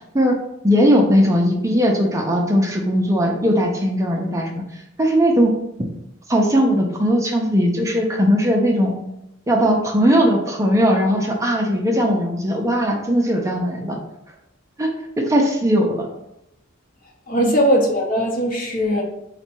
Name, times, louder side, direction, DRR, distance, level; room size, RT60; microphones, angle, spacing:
voice 1, 0.6-4.5 5.0-5.5 6.3-8.9 9.5-14.0 14.8-14.9 15.2-16.1 17.4-17.5, equal, 15° right, 0 dB, 0.4 m, -18 dB
voice 2, 17.3-19.0, equal, 40° left, 0 dB, 0.8 m, -19 dB
4.0 x 2.2 x 4.4 m, 0.83 s
head